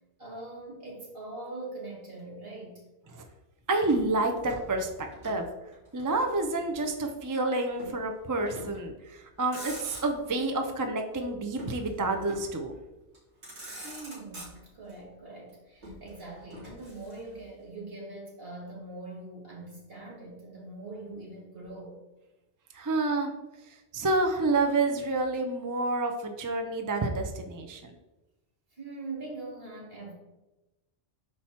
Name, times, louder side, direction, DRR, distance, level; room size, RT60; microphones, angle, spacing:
voice 1, 0.2-2.8 13.8-22.0 28.7-30.1, right 2 dB, 60° right, -3 dB, 2.3 m, -42 dB
voice 2, 3.7-4.9 5.2-5.5 5.9-12.7 22.7-23.3 23.7-27.9, right 2 dB, 25° right, 5 dB, 0.4 m, -29 dB
Motor vehicle (road), 3.9-5.5 5.7-6.8 7.8-8.0 8.5-8.9 9.3-10.4 11.6-12.6 13.1-13.2 13.4-14.9 15.8-17.5, equal, 85° right, 2.5 m, -45 dB
5.9 x 4.7 x 4.2 m, 1.0 s
omnidirectional pair, 1.1 m